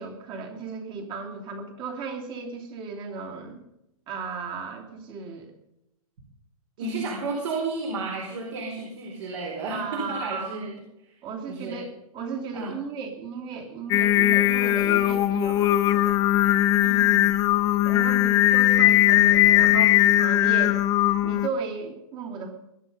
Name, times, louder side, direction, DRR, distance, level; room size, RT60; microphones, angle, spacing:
voice 1, 0.0-3.6 4.1-5.5 6.8-7.0 9.7-10.7 11.2-11.9 12.1-16.2 17.8-20.8 21.2-22.5, right 5 dB, 25° right, 3 dB, 2.8 m, -35 dB
voice 2, 6.8-11.2 11.5-11.8 12.5-12.8 16.8-17.4, right 3 dB, 50° right, 0 dB, 4.2 m, -32 dB
Singing, 13.9-21.5, left 14 dB, 20° left, 0.6 m, -19 dB
21.0 x 10.0 x 5.4 m, 0.85 s
hypercardioid pair, 150°, 19 cm